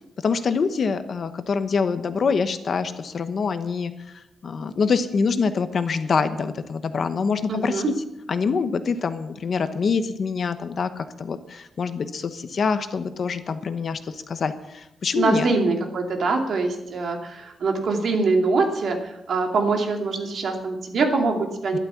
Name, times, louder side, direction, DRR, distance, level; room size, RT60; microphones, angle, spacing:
voice 1, 0.2-3.9 4.4-7.8 8.3-15.5 21.7-21.8, left 5 dB, 50° left, 10 dB, 1.0 m, -25 dB
voice 2, 7.5-7.9 15.1-21.8, right 3 dB, 60° right, 3 dB, 2.6 m, -23 dB
12.5 x 12.0 x 7.1 m, 0.87 s
wide cardioid pair, 150°, 0 cm